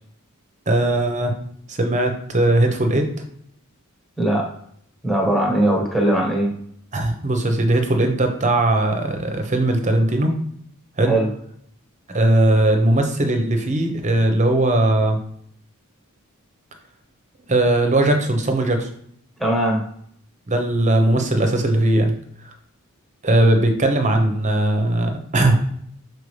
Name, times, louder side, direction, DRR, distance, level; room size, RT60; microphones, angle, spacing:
voice 1, 0.7-1.3 1.7-3.1 6.9-10.3 11.0-11.2 12.1-15.2 17.5-18.9 20.5-22.1 22.5-22.6 23.2-25.6, right 1 dB, 35° right, 5 dB, 1.0 m, -19 dB
voice 2, 4.2-4.5 5.0-6.5 11.1-11.3 19.4-19.8, right 1 dB, ahead, -1 dB, 1.5 m, -19 dB
6.7 x 4.5 x 3.3 m, 0.66 s
head